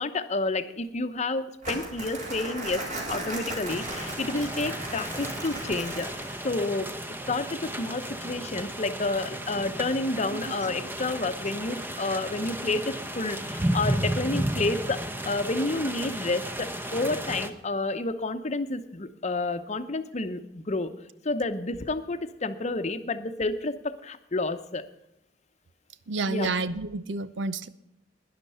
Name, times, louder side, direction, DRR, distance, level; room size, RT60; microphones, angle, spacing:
voice 1, 0.0-2.8 3.1-6.9 7.3-20.9 21.2-24.8 26.3-26.5, left 2 dB, 40° left, 10 dB, 0.8 m, -30 dB
Crumpling crinkling, 1.6-6.5, right 1 dB, 45° right, 3.9 m, -36 dB
sound 1, 3.7-17.5, right 1 dB, 10° right, 0.9 m, -33 dB
voice 2, 26.1-27.7, right 3 dB, 85° right, 15 dB, 0.7 m, -30 dB
12.0 x 10.5 x 5.5 m, 0.84 s
head